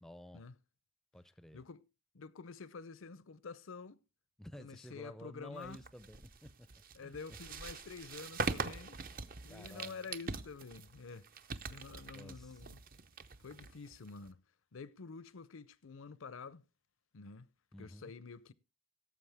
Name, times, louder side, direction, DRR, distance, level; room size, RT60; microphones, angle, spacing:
voice 1, 0.0-0.5 1.1-1.6 4.4-7.1 9.5-10.0 12.1-12.6 17.7-18.2, equal, ahead, 0.5 m, -52 dB
voice 2, 1.5-1.8 2.1-4.0 4.6-5.8 6.9-9.0 9.4-11.3 11.7-12.8 13.4-14.4 14.7-16.6 17.1-17.5 17.8-18.5, left 4 dB, 70° left, 0.6 m, -49 dB
sound 1, 5.6-14.3, right 4 dB, 40° right, 0.6 m, -43 dB
17.0 x 7.6 x 3.5 m
head